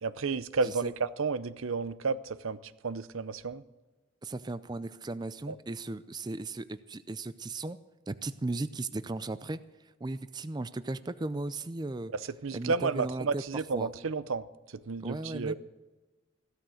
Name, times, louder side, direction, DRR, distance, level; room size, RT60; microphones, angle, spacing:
voice 1, 0.0-3.6 5.5-5.6 12.1-15.5, right 4 dB, 80° right, 15 dB, 0.7 m, -32 dB
voice 2, 4.2-7.8 8.1-9.6 10.0-12.1 12.5-13.4 13.7-13.9 15.0-15.5, right 2 dB, 20° right, 13 dB, 0.4 m, -36 dB
16.0 x 13.0 x 6.4 m, 1.2 s
head